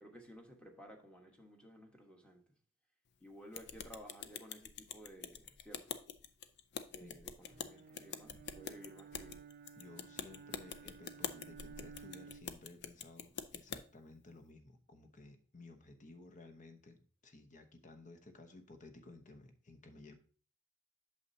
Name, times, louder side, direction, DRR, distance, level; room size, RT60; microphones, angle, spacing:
voice 1, 0.0-2.4 3.2-6.0 6.9-9.4, equal, 5° left, 1.3 m, -55 dB
sound 1, 3.5-13.8, left 7 dB, 55° left, 0.5 m, -46 dB
Bowed string instrument, 7.4-12.7, right 6 dB, 45° right, 0.4 m, -55 dB
voice 2, 9.7-20.1, left 2 dB, 35° left, 1.0 m, -56 dB
8.5 x 6.6 x 2.7 m
head